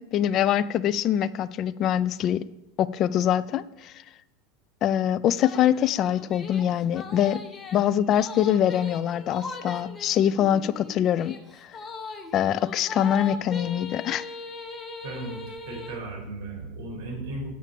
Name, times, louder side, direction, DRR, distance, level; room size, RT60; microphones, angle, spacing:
voice 1, 0.0-2.4 2.8-3.9 4.8-7.4 7.7-11.3 11.6-11.7 12.3-14.3, left 10 dB, 35° left, 15 dB, 0.3 m, -24 dB
sound 1, 5.3-16.0, left 3 dB, 15° left, 1.0 m, -40 dB
voice 2, 15.0-17.5, right 2 dB, 60° right, 0 dB, 3.6 m, -36 dB
7.4 x 5.5 x 7.5 m, 0.87 s
supercardioid pair, 150°, 0 cm